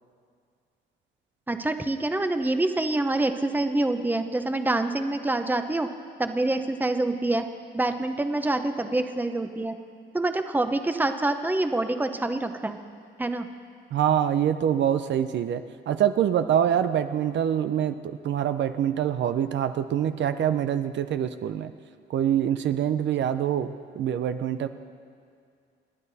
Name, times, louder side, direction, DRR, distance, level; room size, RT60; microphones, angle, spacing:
voice 1, 1.5-5.9 6.2-7.5 7.7-9.8 10.1-12.8 13.2-13.5, right 2 dB, 10° right, 8 dB, 0.9 m, -26 dB
voice 2, 13.9-21.7 22.1-24.7, right 9 dB, 65° right, 10 dB, 0.6 m, -25 dB
29.0 x 9.9 x 4.2 m, 2.2 s
cardioid pair, 90°, 20 cm